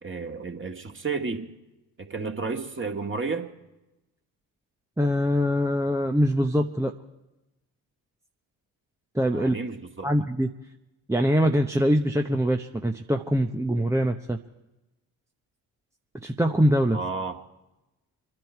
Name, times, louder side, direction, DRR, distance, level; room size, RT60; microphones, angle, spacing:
voice 1, 0.0-1.5 2.0-3.5 9.3-10.1 16.9-17.4, right 4 dB, 25° right, 3 dB, 2.1 m, -32 dB
voice 2, 5.0-6.9 9.1-9.6 10.0-10.5 11.1-14.4 16.2-17.0, equal, 5° right, 3 dB, 0.9 m, -23 dB
26.0 x 11.0 x 4.6 m, 0.97 s
hypercardioid pair, 50°, 46 cm